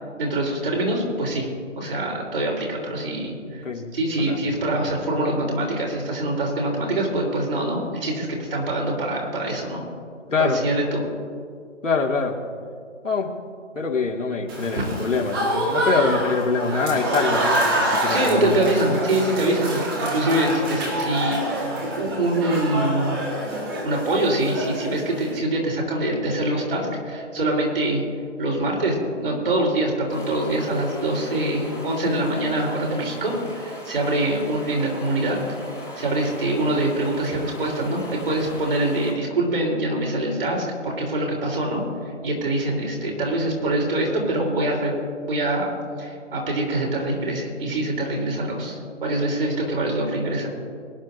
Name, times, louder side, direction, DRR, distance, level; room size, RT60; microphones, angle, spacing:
voice 1, 0.2-1.5 1.8-3.6 3.9-9.8 10.4-11.0 18.1-23.2 23.8-28.0 28.4-35.4 36.0-41.8 42.2-45.0 45.3-45.7 46.0-50.5, right 1 dB, 50° right, -1 dB, 3.8 m, -24 dB
voice 2, 3.2-3.9 4.2-4.4 10.3-10.6 11.8-12.4 13.0-13.3 13.8-18.7, left 4 dB, 80° left, 1 dB, 2.3 m, -24 dB
Applause / Crowd, 14.5-25.4, right 1 dB, 20° right, 1.7 m, -26 dB
Stream, 30.1-39.1, left 1 dB, 5° right, 1.8 m, -39 dB
23.0 x 10.5 x 2.6 m, 2.2 s
figure-of-eight pair, 155°, 37 cm